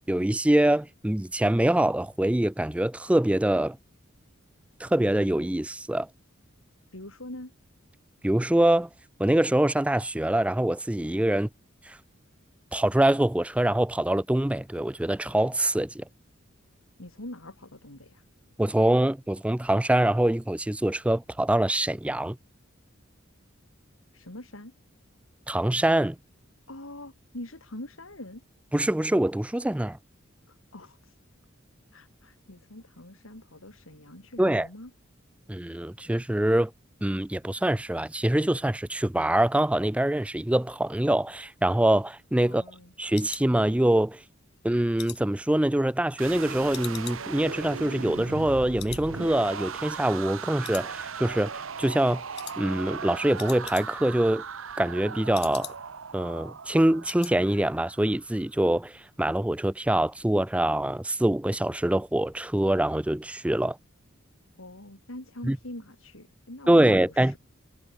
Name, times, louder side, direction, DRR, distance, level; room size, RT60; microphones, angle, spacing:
voice 1, 0.1-3.8 4.8-6.1 8.2-8.9 9.2-11.5 11.9-12.0 12.7-16.0 18.6-22.4 25.5-26.2 28.7-30.0 34.4-34.7 35.5-36.7 37.0-42.6 43.0-44.2 44.6-52.2 52.6-54.4 54.8-55.7 56.1-63.8 65.4-65.6 66.7-67.4, right 1 dB, 5° right, 0.4 m, -24 dB
voice 2, 6.9-7.5 17.0-18.2 24.1-24.7 26.7-28.4 30.5-31.2 31.9-34.9 42.4-42.9 64.6-67.4, left 1 dB, 80° left, 4.6 m, -43 dB
sound 1, 41.4-44.2 44.6-46.3 46.7-48.5 48.8-49.1 49.4-49.5 50.0-50.4 50.6-51.4 51.7-52.0 52.3-52.6 52.9-53.0 53.2-54.2 54.5-56.1 56.4-56.5 56.8-57.4 57.7-57.9 58.2-58.3, left 14 dB, 55° left, 1.1 m, -44 dB
sound 2, 46.2-58.2, right 5 dB, 80° right, 1.0 m, -38 dB
head